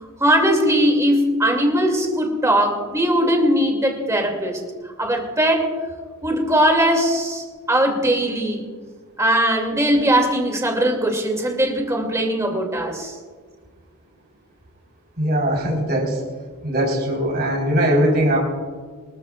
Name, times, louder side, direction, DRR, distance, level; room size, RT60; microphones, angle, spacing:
voice 1, 0.2-4.6 5.0-5.7 6.2-8.7 9.2-13.2, equal, 15° right, 2 dB, 2.6 m, -20 dB
voice 2, 15.2-16.2 16.6-18.4, right 1 dB, 45° right, -2 dB, 4.4 m, -20 dB
25.0 x 14.0 x 2.5 m, 1.6 s
head